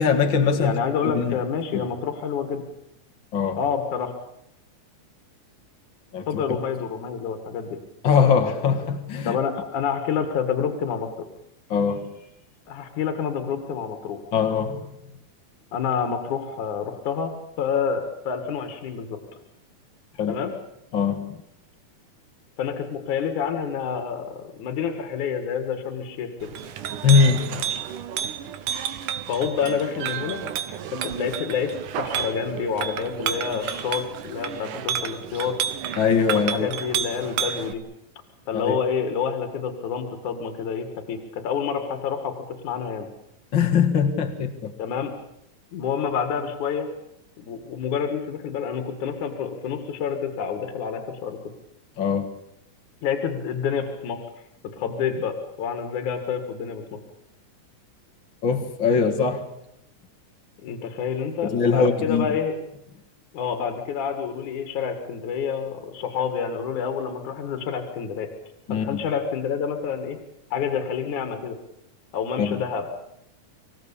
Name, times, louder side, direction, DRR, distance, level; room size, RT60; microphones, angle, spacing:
voice 1, 0.0-0.7 1.0-1.4 1.7-1.9 3.3-3.6 6.1-6.4 8.0-9.4 11.7-12.2 14.3-14.9 20.2-20.4 20.9-21.4 27.0-27.6 36.0-36.7 38.5-38.8 43.5-44.8 52.0-52.4 58.4-59.6 61.4-62.3 68.7-69.0 72.4-72.6, left 6 dB, 40° left, 3 dB, 2.2 m, -22 dB
voice 2, 0.6-2.6 3.5-4.1 6.3-7.8 9.3-11.3 12.7-14.2 15.7-17.3 17.6-19.2 20.3-20.5 22.6-26.5 29.3-30.4 30.9-35.6 36.3-37.8 38.5-43.1 44.8-45.1 45.7-46.9 47.4-51.4 53.0-54.2 54.7-57.0 60.6-62.6 63.3-68.3 68.7-70.2 70.5-71.6 72.1-72.9, left 7 dB, 65° left, 7 dB, 3.5 m, -28 dB
Chink clink, 26.4-37.7, right 9 dB, 75° right, 2.7 m, -31 dB
25.5 x 17.0 x 8.7 m, 0.79 s
omnidirectional pair, 3.8 m